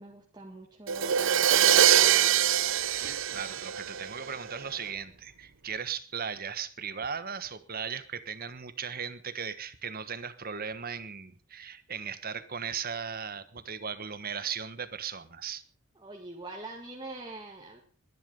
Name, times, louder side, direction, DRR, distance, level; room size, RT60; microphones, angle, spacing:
voice 1, 0.0-2.3 16.0-17.8, right 2 dB, 20° right, 0 dB, 2.0 m, -44 dB
Crash cymbal, 0.9-4.6, right 10 dB, 60° right, 0.7 m, -23 dB
voice 2, 2.8-15.6, right 6 dB, 40° right, 12 dB, 1.4 m, -37 dB
22.0 x 11.0 x 5.4 m, 0.42 s
head